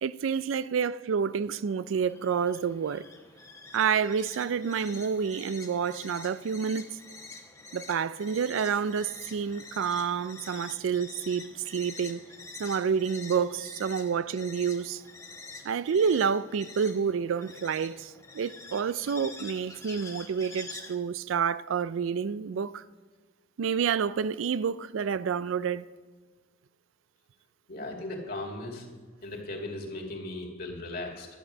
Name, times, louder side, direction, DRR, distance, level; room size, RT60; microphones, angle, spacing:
voice 1, 0.0-3.0 3.7-6.9 7.7-12.2 12.6-15.0 15.6-22.8 23.6-25.8, right 6 dB, 90° right, 0.4 m, -29 dB
sound 1, 1.2-21.0, left 3 dB, 15° left, 1.0 m, -47 dB
voice 2, 27.7-28.9 29.2-31.3, left 2 dB, 50° left, 2.2 m, -37 dB
12.0 x 8.8 x 6.3 m
head